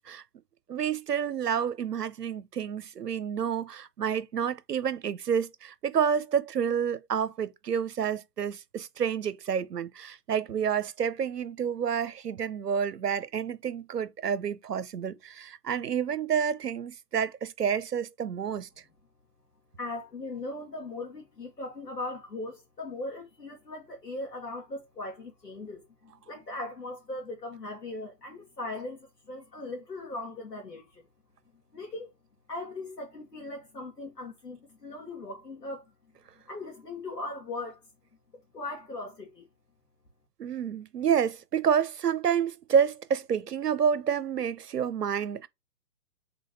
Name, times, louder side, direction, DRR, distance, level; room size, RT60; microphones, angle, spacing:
voice 1, 0.7-18.7 40.4-45.5, right 7 dB, 75° right, 0.8 m, -29 dB
voice 2, 19.8-31.0 31.7-32.1 32.5-35.9 36.5-37.8 38.3-39.5, left 2 dB, 80° left, 2.1 m, -39 dB
3.9 x 3.7 x 2.8 m
figure-of-eight pair, 125°, 48 cm